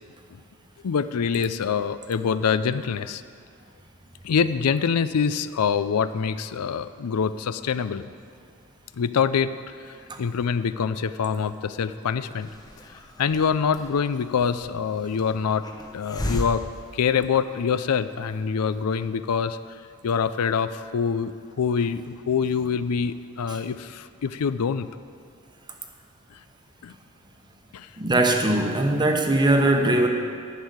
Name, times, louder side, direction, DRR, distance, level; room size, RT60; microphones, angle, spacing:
voice 1, 0.8-3.2 4.2-8.0 8.9-9.5 9.8-9.9 10.2-12.5 13.2-15.6 15.9-16.6 16.9-19.6 20.0-24.9 26.8-26.9 27.7-27.9, left 6 dB, 85° left, 13 dB, 0.4 m, -25 dB
Hiss, 12.3-17.8, left 1 dB, 15° left, 0.8 m, -37 dB
voice 2, 28.0-30.1, right 1 dB, 20° right, 4 dB, 0.9 m, -20 dB
11.5 x 6.5 x 8.7 m, 2.2 s
head